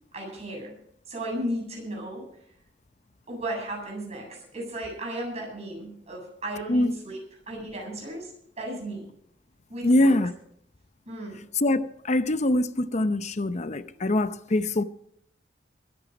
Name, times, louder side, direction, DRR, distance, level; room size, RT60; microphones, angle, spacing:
voice 1, 0.1-0.7 1.1-2.2 3.3-7.2 7.5-8.3 8.6-9.1 9.7-10.1 11.1-11.4, right 1 dB, 40° right, 7.7 m, -35 dB
voice 2, 9.8-10.3 11.5-14.8, left 1 dB, 40° left, 0.7 m, -23 dB
22.0 x 10.0 x 5.1 m
head